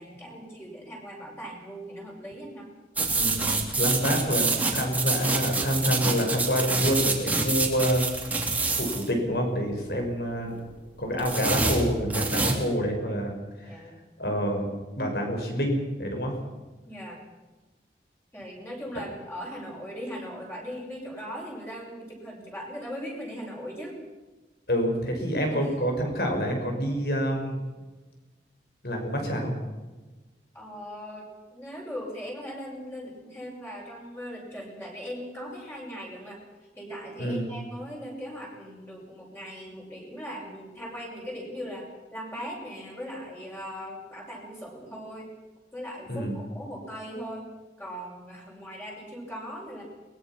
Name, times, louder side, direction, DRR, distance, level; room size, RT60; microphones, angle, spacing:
voice 1, 0.0-2.7 13.6-13.9 16.8-17.2 18.3-24.0 25.5-25.7 30.5-36.4 36.7-45.3 45.7-47.5 47.8-49.8, equal, 15° left, -3 dB, 6.3 m, -39 dB
sound 1, 3.0-9.1 11.2-12.6, right 3 dB, 10° right, 3.1 m, -26 dB
voice 2, 3.1-8.0 8.8-10.7 11.0-13.8 14.2-16.3 24.7-27.6 28.8-29.5 37.2-37.5 46.1-46.3, equal, 60° left, 3 dB, 5.9 m, -27 dB
23.0 x 21.0 x 5.9 m, 1.2 s
head